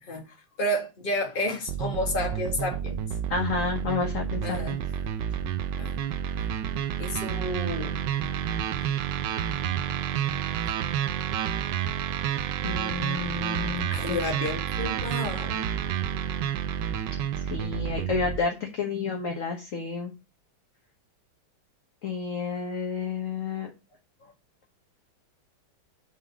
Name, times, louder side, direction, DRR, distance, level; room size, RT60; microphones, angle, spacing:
voice 1, 0.0-3.0 4.4-4.8 5.8-5.9 7.0-8.0 13.9-15.7 24.2-24.3, left 1 dB, 25° left, 1.6 m, -31 dB
sound 1, 1.7-18.4, right 9 dB, 70° right, 1.1 m, -30 dB
voice 2, 3.3-4.8 12.6-14.2 17.4-20.1 22.0-23.7, left 5 dB, 45° left, 1.3 m, -30 dB
6.9 x 3.9 x 6.1 m
omnidirectional pair, 2.3 m